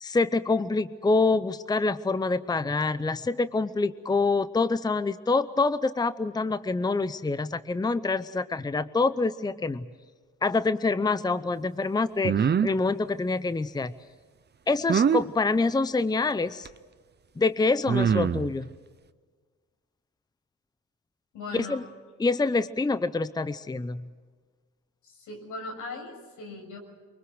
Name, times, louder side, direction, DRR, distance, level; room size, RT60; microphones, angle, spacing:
voice 1, 0.0-9.9 10.4-12.3 12.6-13.9 14.7-16.7 17.4-18.7 21.5-21.8 22.2-24.0, left 3 dB, 15° left, 14 dB, 0.7 m, -26 dB
sound 1, 12.2-12.7 14.9-15.2 16.7-16.8 17.9-18.5, right 7 dB, 35° right, 0.8 m, -23 dB
voice 2, 21.3-21.9 25.0-26.8, left 3 dB, 80° left, 2 dB, 7.1 m, -39 dB
24.0 x 23.5 x 6.4 m, 1.5 s
cardioid pair, 90°, 30 cm